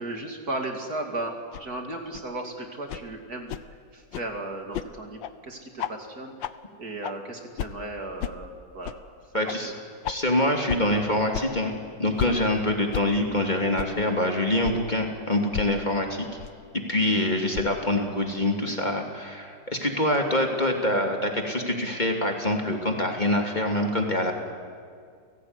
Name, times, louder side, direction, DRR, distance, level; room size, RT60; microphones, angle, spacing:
voice 1, 0.0-3.5 3.9-6.3 6.8-8.9 9.3-9.6, right 2 dB, 55° right, 3 dB, 3.0 m, -35 dB
sound 1, 1.5-1.6 2.1-2.2 2.9-3.0 3.5-3.6 4.1-4.3 4.7-4.9 5.2-5.3 5.8-5.9 6.4-6.5 7.0-7.1 7.6-7.7 8.2-8.3 8.8-9.0 9.5-9.6 10.0-10.2 10.7-10.8 11.3-11.5 12.2-12.3 12.9-13.0 13.8-13.9 14.6-14.8 15.5-15.7 16.4-16.5 17.5-17.7, left 10 dB, 85° left, 1.6 m, -32 dB
voice 2, 9.3-9.7 10.1-11.7 12.0-16.3 16.7-24.3, left 1 dB, 25° left, 2 dB, 2.8 m, -25 dB
30.0 x 17.5 x 9.7 m, 2.1 s
omnidirectional pair, 2.0 m